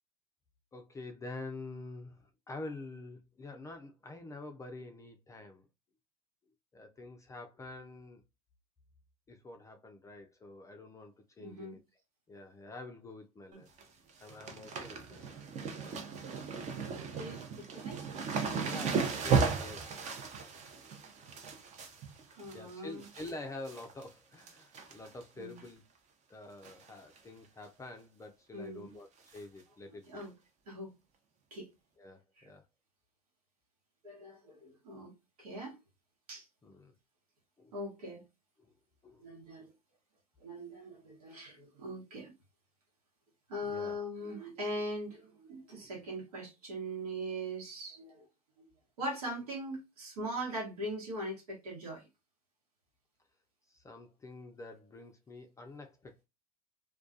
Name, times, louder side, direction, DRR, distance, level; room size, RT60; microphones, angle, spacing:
voice 1, 0.7-5.7 6.7-8.2 9.3-11.8 12.3-13.7 14.2-15.4 18.6-19.9 22.5-25.8 26.3-30.2 32.0-32.6 36.6-36.9 37.6-37.7 39.0-39.2 43.7-44.0 45.7-45.9 53.7-56.2, left 2 dB, 15° left, 0.4 m, -47 dB
voice 2, 11.4-11.8 16.8-18.1 22.3-23.0 25.4-25.6 28.5-28.9 30.1-30.3 30.7-30.9 31.5-31.7 32.4-32.5 34.0-35.1 35.4-35.8 36.3-36.4 37.7-38.2 39.2-39.7 40.4-42.3 43.5-48.2 49.0-52.0, equal, 80° right, 1.1 m, -41 dB
sound 1, 13.5-13.8 14.1-23.3 23.7-24.1 24.4-25.2 25.6-25.7 26.6-26.9 27.2-27.3 27.6-27.7 29.3-29.4 30.2-30.3, right 5 dB, 40° right, 0.7 m, -35 dB
2.3 x 2.3 x 2.5 m
hypercardioid pair, 85°, 19 cm